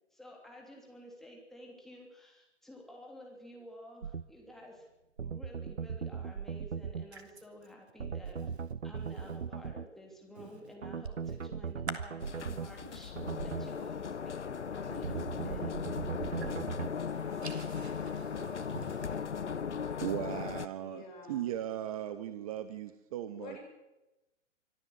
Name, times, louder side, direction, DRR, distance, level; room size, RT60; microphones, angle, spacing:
voice 1, 0.1-4.9 5.2-8.4 8.8-13.1 13.4-16.6, equal, ahead, 0 dB, 3.2 m, -51 dB
sound 1, 4.0-4.2 5.2-7.1 8.0-9.9 10.8-12.7 13.2-13.7 15.0-16.9, right 6 dB, 80° right, 0.8 m, -38 dB
voice 2, 8.4-8.7 9.0-9.4 10.4-10.7 11.2-11.4 12.4-13.9 14.8-15.6 15.9-16.5 16.8-19.2, right 4 dB, 65° right, 6 dB, 3.2 m, -50 dB
sound 2, 12.2-20.7, left 6 dB, 75° left, 0.8 m, -38 dB
voice 3, 19.3-21.4 23.3-23.6, left 3 dB, 40° left, 3 dB, 7.8 m, -50 dB
voice 4, 20.0-23.6, right 11 dB, 30° right, 12 dB, 0.9 m, -37 dB
25.0 x 14.0 x 8.0 m, 0.99 s
figure-of-eight pair, 125°, 36 cm